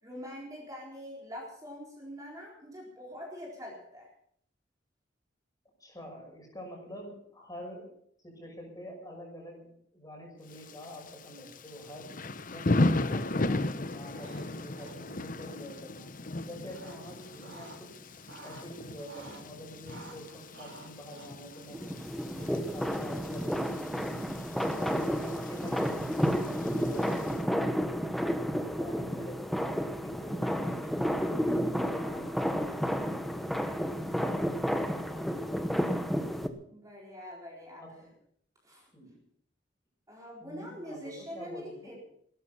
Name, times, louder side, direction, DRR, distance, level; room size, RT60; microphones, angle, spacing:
voice 1, 0.0-4.1 36.7-37.8 38.6-38.9 40.1-41.9, equal, 20° right, -3 dB, 4.2 m, -44 dB
voice 2, 5.8-7.9 8.2-12.2 12.5-16.1 16.4-18.0 18.4-22.0 22.3-24.3 24.7-28.0 28.4-29.7 30.0-33.3 33.8-36.1 37.8-38.1 38.9-39.2 40.4-41.9, equal, 20° left, 1 dB, 5.9 m, -47 dB
Thunder / Rain, 10.5-27.4, left 2 dB, 45° left, 0.9 m, -36 dB
sound 1, 14.0-14.5 14.7-15.3 16.3-17.8 18.1-19.4 19.9-22.8, right 2 dB, 80° right, 4.6 m, -51 dB
sound 2, 21.7-36.5, equal, ahead, 1.1 m, -31 dB
17.5 x 12.5 x 5.7 m, 0.67 s
head